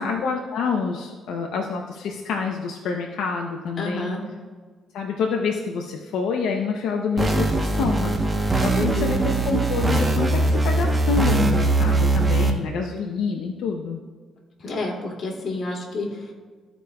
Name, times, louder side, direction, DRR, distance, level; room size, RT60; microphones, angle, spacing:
voice 1, 0.0-4.1 4.9-8.1 8.6-14.0, left 5 dB, 85° left, 2 dB, 0.6 m, -27 dB
voice 2, 3.8-4.2 8.7-9.2 14.6-16.3, left 2 dB, 50° left, -2 dB, 2.2 m, -29 dB
sound 1, 7.2-12.5, right 2 dB, 20° right, 0.9 m, -21 dB
14.5 x 5.0 x 2.3 m, 1.5 s
cardioid pair, 90°, 0 cm